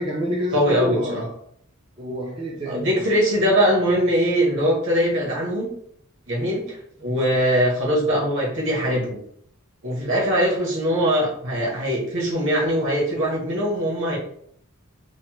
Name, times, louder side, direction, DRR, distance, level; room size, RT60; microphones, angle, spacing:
voice 1, 0.0-1.4 2.0-3.1 7.0-7.4, equal, 25° right, -2 dB, 0.4 m, -28 dB
voice 2, 0.5-1.2 2.7-5.7 6.3-9.1 9.8-14.2, equal, 60° right, -2 dB, 1.1 m, -21 dB
3.1 x 2.1 x 3.0 m, 0.66 s
head